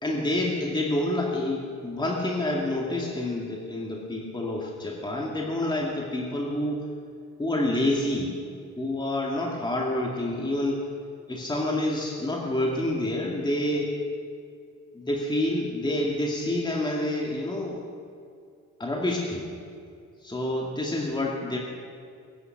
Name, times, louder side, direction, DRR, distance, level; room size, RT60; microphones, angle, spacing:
voice 1, 0.0-6.9 7.4-8.4 8.8-10.8 11.3-13.9 14.9-17.8 18.8-19.5 20.2-21.6, left 1 dB, 15° left, -2 dB, 2.3 m, -28 dB
21.5 x 9.6 x 6.0 m, 2.4 s
cardioid pair, 90°, 30 cm